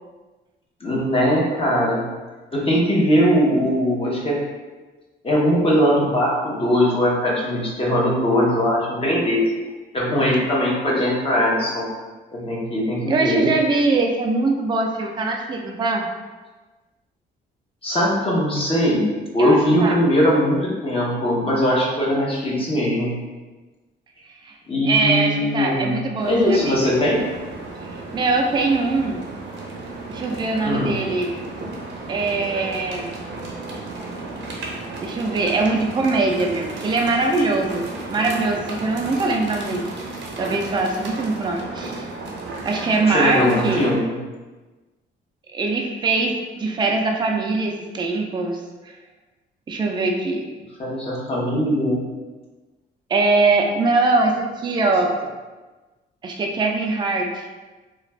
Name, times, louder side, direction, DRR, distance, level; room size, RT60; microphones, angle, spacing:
voice 1, 0.8-2.1 2.5-4.4 5.2-9.4 9.9-11.9 12.3-13.5 17.8-19.0 19.3-23.2 24.7-27.2 30.6-31.0 43.1-44.2 50.8-52.0, equal, 30° left, -5 dB, 0.8 m, -20 dB
voice 2, 13.1-16.1 19.4-20.0 24.4-24.5 24.8-26.8 27.8-29.2 30.1-31.3 32.1-33.1 35.0-39.9 40.4-42.1 42.6-43.9 45.5-48.9 49.7-50.5 53.1-55.1 56.2-57.5, right 3 dB, 25° right, 1 dB, 0.4 m, -22 dB
sound 1, 26.2-44.0, right 2 dB, 65° right, 0.6 m, -34 dB
2.4 x 2.2 x 3.2 m, 1.2 s
cardioid pair, 90°, 20 cm